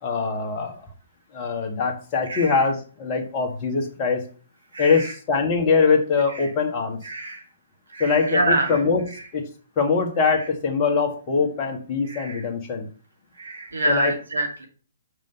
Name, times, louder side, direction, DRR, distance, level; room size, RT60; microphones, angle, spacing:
voice 1, 0.0-0.9 1.3-4.2 4.8-7.0 8.0-9.5 9.8-12.9 13.9-14.1, left 5 dB, 30° left, 3 dB, 1.8 m, -23 dB
voice 2, 4.7-5.1 6.3-6.5 7.0-7.4 7.9-8.8 12.1-12.4 13.4-14.7, right 2 dB, 70° right, 2 dB, 2.4 m, -26 dB
6.3 x 5.4 x 5.4 m, 0.40 s
figure-of-eight pair, 125°, 0 cm